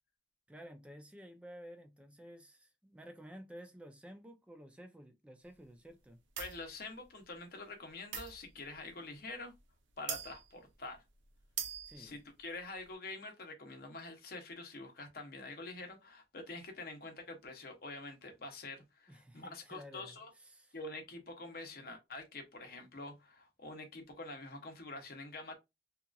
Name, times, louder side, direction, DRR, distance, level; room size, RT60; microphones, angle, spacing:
voice 1, 0.5-6.2 11.8-12.2 19.1-20.8, equal, 5° right, 0.4 m, -53 dB
voice 2, 6.4-9.5 10.0-11.0 12.0-20.3 20.7-25.6, left 2 dB, 55° left, 0.7 m, -46 dB
sound 1, 6.4-6.7 8.1-8.8 9.6-9.7 10.1-10.5 10.9-11.0 11.4-12.2, right 8 dB, 85° right, 0.5 m, -41 dB
2.8 x 2.5 x 2.3 m
head